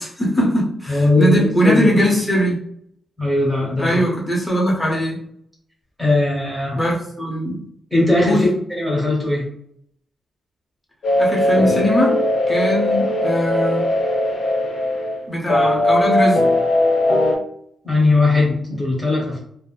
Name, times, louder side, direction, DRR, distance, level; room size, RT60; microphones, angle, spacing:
voice 1, 0.0-2.6 3.8-5.2 6.7-7.6 8.2-8.5 11.2-12.2 12.5-13.9 15.3-16.4, equal, 15° left, -3 dB, 0.7 m, -20 dB
voice 2, 0.9-2.0 3.2-4.0 6.0-6.8 7.9-9.5 17.8-19.4, left 2 dB, 5° right, -4 dB, 1.1 m, -19 dB
sound 1, 11.0-17.4, left 1 dB, 60° left, 0.7 m, -19 dB
3.5 x 2.0 x 2.4 m, 0.69 s
wide cardioid pair, 165°, 0 cm